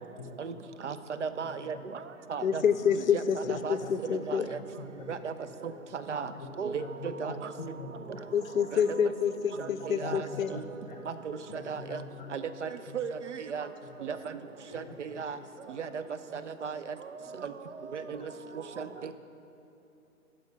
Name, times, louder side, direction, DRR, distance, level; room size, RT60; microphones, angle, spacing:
voice 1, 0.2-0.5 1.7-1.8 3.4-4.0 4.2-5.2 6.0-7.4 7.8-8.2 9.5-10.2 10.5-11.0 11.5-12.3 12.9-13.0 13.8-14.0 14.7-15.2 17.2-17.6 18.1-18.3, left 4 dB, 30° left, 4 dB, 0.8 m, -45 dB
voice 2, 1.2-1.8 2.3-2.6 3.1-3.8 4.1-4.6 5.1-5.3 6.1-6.3 6.6-7.3 9.6-10.6 11.2-12.0 12.3-13.7 14.0-14.2 14.7-15.4 15.8-16.0 16.6-16.8 17.4-17.5 17.9-18.3 18.8-18.9, right 6 dB, 55° right, 12 dB, 0.5 m, -35 dB
voice 3, 2.4-4.5 8.3-10.5, left 7 dB, 65° left, 13 dB, 0.5 m, -28 dB
8.9 x 6.2 x 5.6 m, 2.9 s
figure-of-eight pair, 145°, 44 cm